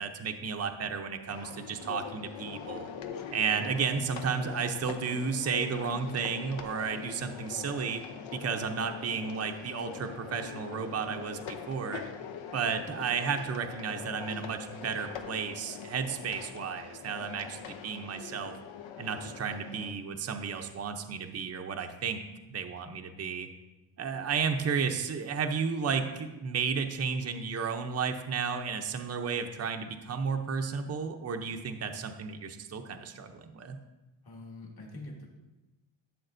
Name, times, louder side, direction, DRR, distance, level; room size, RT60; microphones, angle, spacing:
voice 1, 0.0-2.9 3.3-8.0 8.3-12.0 12.5-18.5 19.0-22.2 22.5-23.5 24.0-33.8, right 6 dB, 35° right, 5 dB, 0.6 m, -33 dB
sound 1, 1.3-19.9, left 7 dB, 75° left, 0.8 m, -43 dB
voice 2, 34.2-35.4, left 2 dB, 50° left, -1 dB, 2.1 m, -45 dB
12.5 x 7.0 x 2.6 m, 1.1 s
cardioid pair, 105°, 47 cm